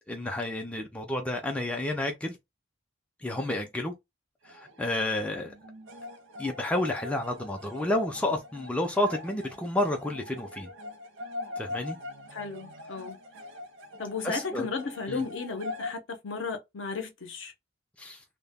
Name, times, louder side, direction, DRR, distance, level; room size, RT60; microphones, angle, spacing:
voice 1, 0.1-2.4 3.2-3.9 4.4-5.5 6.4-10.7 11.6-12.0 14.2-14.7 15.1-15.2 18.0-18.2, left 1 dB, 5° left, 0.3 m, -30 dB
sound 1, 4.4-15.9, left 2 dB, 65° right, 0.5 m, -42 dB
voice 2, 12.3-13.2 14.0-17.5, left 4 dB, 65° left, 0.6 m, -34 dB
2.1 x 2.0 x 3.3 m
head